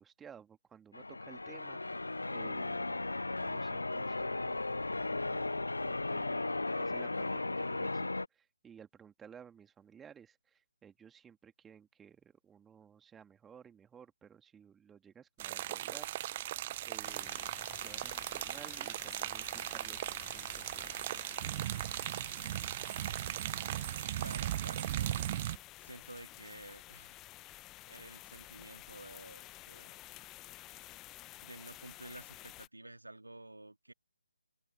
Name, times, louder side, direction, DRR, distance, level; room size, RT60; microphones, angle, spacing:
voice 1, 0.0-3.1 3.4-4.6 6.7-16.1 16.9-17.5 17.8-21.7, right 7 dB, 5° right, 2.1 m, -56 dB
Church bell, 0.9-8.3, left 2 dB, 75° left, 0.3 m, -36 dB
sound 1, 15.4-25.6, right 14 dB, 25° right, 0.4 m, -38 dB
sound 2, 17.0-32.7, left 17 dB, 15° left, 0.9 m, -52 dB
voice 2, 24.2-25.2 25.8-27.2 27.9-30.0 31.4-33.9, right 2 dB, 80° right, 2.6 m, -51 dB
open air
figure-of-eight pair, 150°, 0 cm